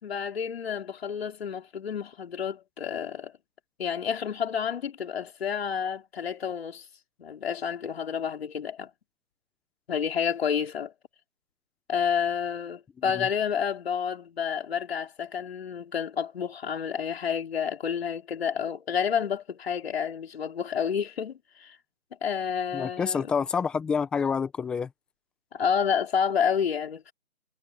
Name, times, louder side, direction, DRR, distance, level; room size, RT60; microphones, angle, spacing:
voice 1, 0.0-3.3 3.8-6.8 7.2-8.9 9.9-10.9 11.9-21.8 22.2-23.3 25.5-27.1, left 7 dB, 45° left, 4.3 m, -29 dB
voice 2, 22.7-24.9, left 6 dB, ahead, 0.8 m, -28 dB
figure-of-eight pair, 150°, 41 cm